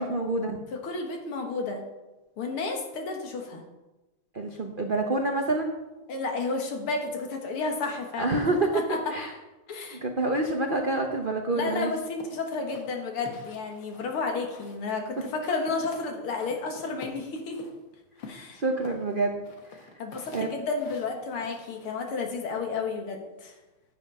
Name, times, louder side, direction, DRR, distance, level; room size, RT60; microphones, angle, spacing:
voice 1, 0.0-0.6 4.3-5.8 8.2-8.8 9.1-9.3 9.9-11.9 18.5-19.9 20.3-20.5, right 2 dB, 80° right, 3 dB, 0.4 m, -27 dB
voice 2, 0.7-1.8 2.4-3.6 6.1-8.5 8.7-9.0 9.7-10.0 11.5-17.7 18.3-18.6 20.0-23.5, left 4 dB, 80° left, 2 dB, 2.5 m, -32 dB
sound 1, 12.2-14.9 15.1-16.1 16.4-17.7 18.2-22.0, left 3 dB, 60° left, 2.1 m, -47 dB
10.5 x 7.6 x 5.5 m, 1.1 s
omnidirectional pair, 2.4 m